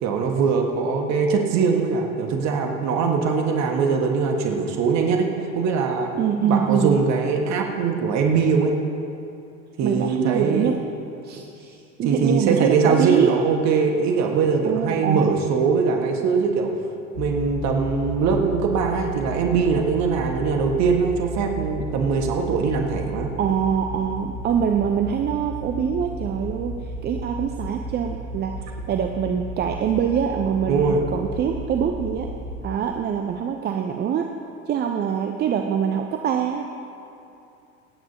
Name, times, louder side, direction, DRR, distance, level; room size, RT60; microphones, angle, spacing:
voice 1, 0.0-5.3 5.5-6.1 6.4-8.7 9.8-10.7 11.3-11.4 12.0-16.7 17.2-23.3 30.7-31.0, right 5 dB, 45° right, 2 dB, 1.5 m, -22 dB
voice 2, 6.2-7.0 9.8-10.8 11.2-13.4 14.6-15.4 23.4-28.6 28.9-32.3 32.6-34.3 34.7-36.6, right 8 dB, 25° right, 4 dB, 0.6 m, -24 dB
sound 1, 17.1-32.7, right 1 dB, 75° left, 2.3 m, -34 dB
27.5 x 9.2 x 2.8 m, 2.7 s
figure-of-eight pair, 80°, 40 cm